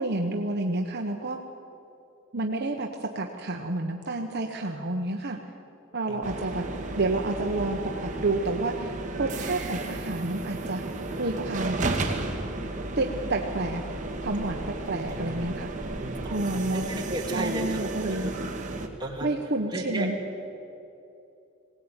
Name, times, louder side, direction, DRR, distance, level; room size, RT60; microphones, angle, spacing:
voice 1, 0.0-1.4 2.3-5.4 5.9-6.7 7.0-10.8 11.2-11.9 13.0-13.8 14.2-15.7 16.3-16.9 17.3-18.3 19.2-20.1, right 2 dB, 55° right, 3 dB, 1.2 m, -29 dB
sound 1, 6.2-18.9, right 2 dB, 40° right, 2.1 m, -33 dB
voice 2, 14.9-15.3 16.0-17.8 18.1-18.3 19.0-19.3 19.7-20.1, right 1 dB, 20° right, -1 dB, 3.4 m, -34 dB
21.0 x 18.0 x 9.0 m, 2.8 s
head